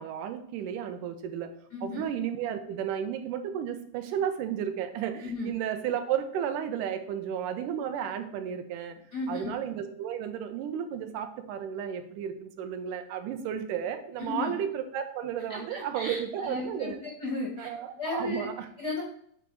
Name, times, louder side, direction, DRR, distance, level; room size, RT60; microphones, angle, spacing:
voice 1, 0.0-1.5 1.8-9.0 9.3-17.0 17.6-18.7, right 9 dB, 85° right, 8 dB, 2.2 m, -33 dB
voice 2, 1.7-2.0 5.2-5.5 9.1-9.5 14.2-14.5 15.5-16.9 17.2-17.7 18.0-18.5 18.8-19.0, left 2 dB, 75° left, -1 dB, 0.9 m, -34 dB
8.6 x 3.0 x 4.6 m, 0.65 s
omnidirectional pair, 3.7 m